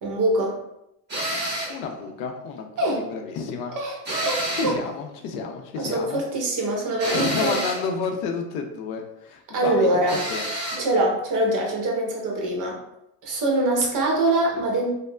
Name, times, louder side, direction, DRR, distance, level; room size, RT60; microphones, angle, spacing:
voice 1, 0.0-0.6 2.8-3.0 3.8-4.8 5.8-7.6 9.5-10.2 10.8-12.8 13.2-14.9, right 1 dB, 40° right, -1 dB, 0.8 m, -24 dB
sound 1, 1.1-1.8 4.0-4.8 7.0-7.9 10.1-10.9, right 1 dB, 20° right, 1.4 m, -28 dB
voice 2, 1.7-3.8 4.5-6.2 7.1-9.9 10.3-10.5, left 5 dB, 70° left, 3 dB, 0.6 m, -30 dB
3.0 x 2.0 x 2.2 m, 0.83 s
supercardioid pair, 105°, 49 cm